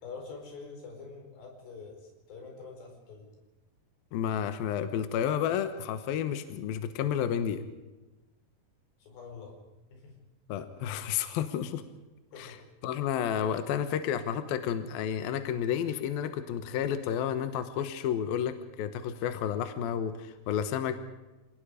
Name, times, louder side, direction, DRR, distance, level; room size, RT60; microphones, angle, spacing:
voice 1, 0.0-3.3 9.0-9.6 9.9-10.1 12.3-12.6, left 4 dB, 90° left, 2 dB, 6.8 m, -45 dB
voice 2, 4.1-7.6 10.5-11.8 12.4-12.6 12.8-21.0, left 9 dB, 70° left, 10 dB, 2.7 m, -31 dB
27.0 x 19.0 x 5.0 m, 1.1 s
omnidirectional pair, 4.8 m